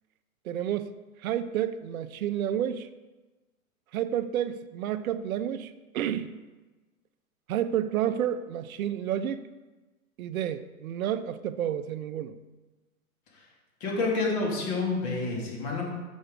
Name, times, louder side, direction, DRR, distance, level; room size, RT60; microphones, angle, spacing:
voice 1, 0.4-0.9 1.2-2.9 3.9-6.4 7.5-9.5 10.2-12.4, right 10 dB, 70° right, 12 dB, 0.7 m, -30 dB
voice 2, 13.8-15.8, left 3 dB, 45° left, -2 dB, 3.4 m, -28 dB
7.1 x 6.4 x 6.7 m, 1.2 s
hypercardioid pair, 135°, 44 cm